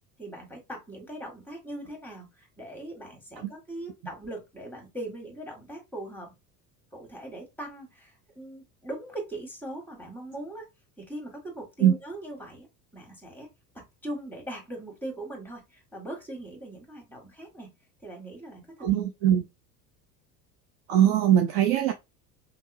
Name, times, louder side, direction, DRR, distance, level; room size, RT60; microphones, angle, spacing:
voice 1, 0.2-6.3 6.9-10.7 11.0-12.7 12.9-13.5 13.7-17.7 18.0-18.7, right 1 dB, 5° left, 1.7 m, -40 dB
voice 2, 18.8-19.5 20.9-21.9, right 10 dB, 45° right, 0.6 m, -21 dB
5.3 x 2.1 x 2.5 m
figure-of-eight pair, 70°, 49 cm